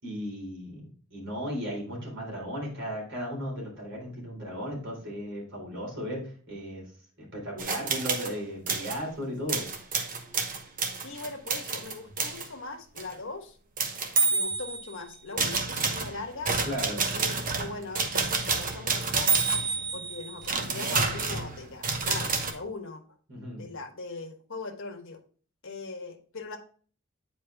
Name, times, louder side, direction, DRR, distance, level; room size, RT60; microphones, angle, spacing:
voice 1, 0.0-6.9 7.2-9.7 16.6-17.0 23.3-23.6, equal, 65° right, -2 dB, 4.0 m, -36 dB
sound 1, 7.6-8.3 8.7-9.0 9.5-12.5 13.0-13.1 13.8-14.9 15.4-22.5, right 4 dB, 40° right, 1.0 m, -29 dB
voice 2, 11.0-13.6 14.3-16.6 17.1-19.3 19.9-23.0 23.6-25.2 25.6-26.6, left 3 dB, 65° left, 4 dB, 1.3 m, -40 dB
9.0 x 5.0 x 3.5 m, 0.43 s
head